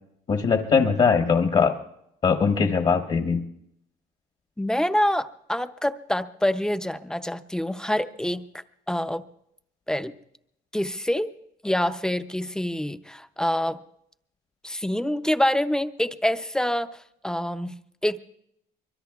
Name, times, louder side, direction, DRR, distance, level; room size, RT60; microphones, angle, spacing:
voice 1, 0.3-1.7 2.2-3.4, left 5 dB, 40° left, 5 dB, 1.1 m, -21 dB
voice 2, 4.6-8.5 8.9-9.2 9.9-10.1 10.7-11.3 11.6-13.8 14.6-18.2, left 1 dB, 5° left, 11 dB, 0.5 m, -26 dB
24.0 x 22.0 x 2.4 m, 0.77 s
cardioid pair, 110°, 17 cm